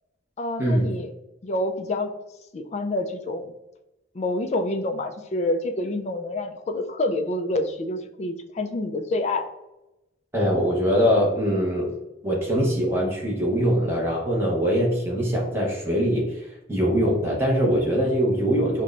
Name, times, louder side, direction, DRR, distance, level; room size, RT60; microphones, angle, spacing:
voice 1, 0.4-1.1 1.4-2.1 2.5-3.5 4.1-9.5, left 2 dB, 35° left, 6 dB, 0.3 m, -27 dB
voice 2, 10.3-11.9 12.2-18.8, equal, 10° right, -3 dB, 0.8 m, -22 dB
5.9 x 2.2 x 2.4 m, 0.95 s
head